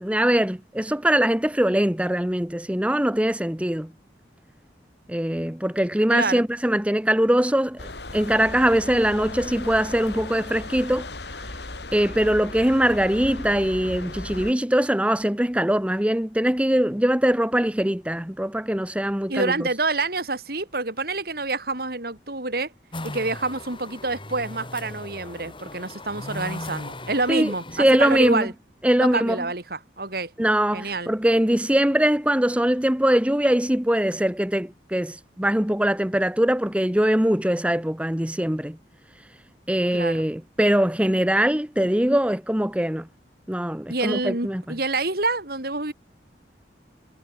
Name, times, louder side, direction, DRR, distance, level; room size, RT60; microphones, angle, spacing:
voice 1, 0.0-3.9 5.1-11.1 11.9-19.7 27.3-27.5 27.8-28.5 28.8-29.4 30.4-38.8 39.7-43.1 43.5-44.6, right 1 dB, 5° right, 1.0 m, -22 dB
voice 2, 6.1-6.4 19.3-22.7 23.0-28.5 29.0-30.3 30.7-31.1 39.9-40.2 43.9-45.9, right 3 dB, 60° right, 3.5 m, -27 dB
sound 1, 7.8-14.5, left 2 dB, 70° left, 4.2 m, -36 dB
sound 2, 22.9-28.3, left 1 dB, 30° left, 4.8 m, -38 dB
head